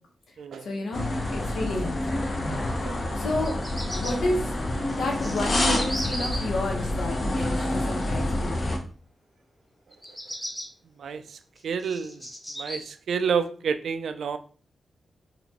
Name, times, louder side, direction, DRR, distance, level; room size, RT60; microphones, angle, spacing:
voice 1, 0.6-1.1 1.3-2.3 3.1-3.6 3.9-4.6 4.9-8.8, left 1 dB, 80° left, 1 dB, 1.0 m, -31 dB
sound 1, 0.9-8.8, left 1 dB, 35° left, 0.6 m, -28 dB
Bird vocalization bird call bird song, 3.4-4.1 4.9-6.4 9.9-10.6 11.3-12.8, equal, 10° left, 1.1 m, -36 dB
voice 2, 11.0-11.4 11.6-12.2 12.6-14.4, right 6 dB, 75° right, 10 dB, 0.3 m, -29 dB
4.0 x 3.0 x 2.9 m, 0.43 s
wide cardioid pair, 175°, 0 cm